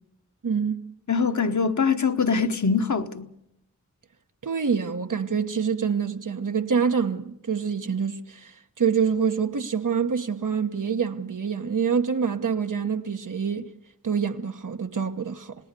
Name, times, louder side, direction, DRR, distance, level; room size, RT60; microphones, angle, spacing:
voice 1, 0.4-0.8 4.4-8.5 8.8-13.7 14.0-15.6, right 6 dB, 90° right, 1.1 m, -26 dB
voice 2, 1.1-3.3, left 5 dB, 70° left, 1.2 m, -23 dB
27.0 x 18.5 x 6.8 m
wide cardioid pair, 65°, 31 cm